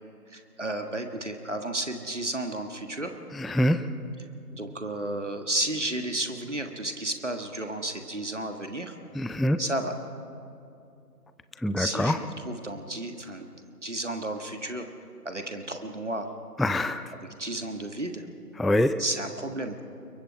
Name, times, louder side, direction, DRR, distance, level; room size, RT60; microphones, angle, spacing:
voice 1, 0.3-3.1 4.5-9.0 9.6-9.9 11.8-13.5 13.8-14.9 15.2-16.3 17.4-18.2 19.0-19.8, right 1 dB, 50° right, 6 dB, 1.6 m, -32 dB
voice 2, 3.3-3.8 9.1-9.6 11.6-12.2 16.6-17.0 18.6-18.9, left 1 dB, ahead, 11 dB, 0.4 m, -24 dB
27.0 x 22.5 x 4.8 m, 2.6 s
figure-of-eight pair, 170°, 47 cm